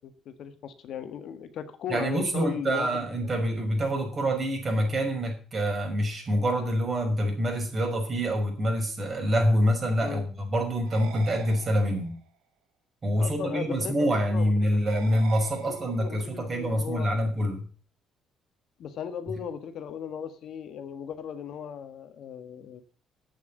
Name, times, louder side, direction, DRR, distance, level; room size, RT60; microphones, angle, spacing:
voice 1, 0.0-2.9 3.2-3.3 10.0-10.2 13.2-14.5 15.6-17.3 18.8-22.8, left 7 dB, 65° left, 10 dB, 1.5 m, -37 dB
voice 2, 1.9-12.2 13.0-17.6, equal, 40° right, 2 dB, 5.8 m, -26 dB
sound 1, 10.9-12.3 14.9-16.3, right 8 dB, 80° right, 1.9 m, -45 dB
8.5 x 7.5 x 9.0 m, 0.42 s
hypercardioid pair, 55°, 0 cm